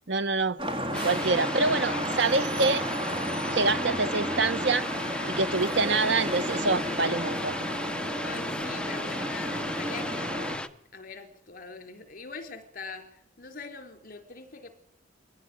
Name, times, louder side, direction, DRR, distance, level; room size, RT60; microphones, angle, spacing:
voice 1, 0.1-0.6 1.0-2.8 3.5-4.8 5.3-7.6, right 3 dB, 65° right, 1.4 m, -26 dB
Vehicle horn car horn honking / Traffic noise roadway noise, 0.6-10.6, equal, 25° right, 4.5 m, -32 dB
sound 1, 0.9-10.7, left 1 dB, 5° left, 1.1 m, -36 dB
voice 2, 1.8-2.7 8.2-10.3 10.9-13.1 13.4-14.7, left 4 dB, 45° left, 4.0 m, -43 dB
23.0 x 18.5 x 9.8 m
head